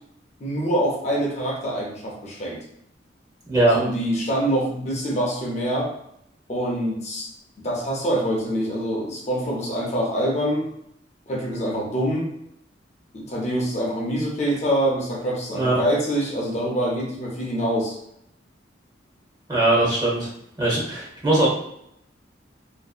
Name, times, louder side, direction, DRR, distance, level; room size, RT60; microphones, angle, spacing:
voice 1, 0.4-2.6 3.7-5.9 6.5-7.3 7.6-10.7 11.3-12.3 13.1-18.0, equal, 40° left, -3 dB, 0.6 m, -25 dB
voice 2, 19.5-20.3 20.6-21.5, right 2 dB, 20° right, -5 dB, 0.8 m, -20 dB
2.6 x 2.0 x 2.3 m, 0.75 s
head